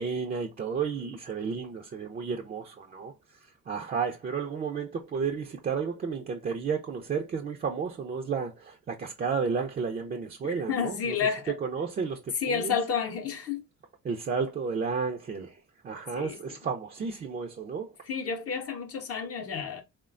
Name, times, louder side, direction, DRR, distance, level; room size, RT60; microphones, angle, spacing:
voice 1, 0.0-3.1 3.4-11.2 11.6-12.8 14.0-17.9, right 5 dB, 30° right, 0.4 m, -32 dB
voice 2, 10.7-11.6 12.4-13.6 16.2-16.4 18.1-19.8, left 6 dB, 50° left, 0.6 m, -30 dB
3.1 x 2.1 x 2.4 m
cardioid pair, 90°, 30 cm